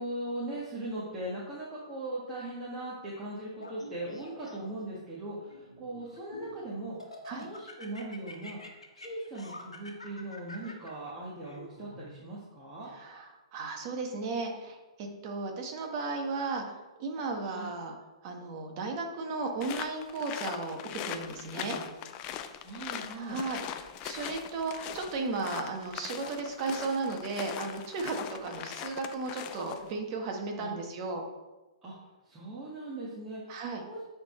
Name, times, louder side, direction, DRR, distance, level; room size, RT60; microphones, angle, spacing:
voice 1, 0.0-7.0 7.3-12.9 17.4-17.7 21.6-21.8 22.6-23.4 30.6-30.7 31.8-32.0 32.2-33.5 33.9-34.0, right 1 dB, 20° right, -7 dB, 1.7 m, -39 dB
Laughter, 3.6-4.9 5.5-6.6 7.0-12.0, left 2 dB, 90° left, 1.2 m, -47 dB
voice 2, 12.9-17.9 18.2-21.8 23.1-31.2 33.5-33.8, right 3 dB, 40° right, 2 dB, 1.5 m, -35 dB
sound 1, 19.6-29.9, left 10 dB, 35° left, 0.5 m, -41 dB
9.4 x 3.9 x 4.4 m, 1.1 s
figure-of-eight pair, 115°, 3 cm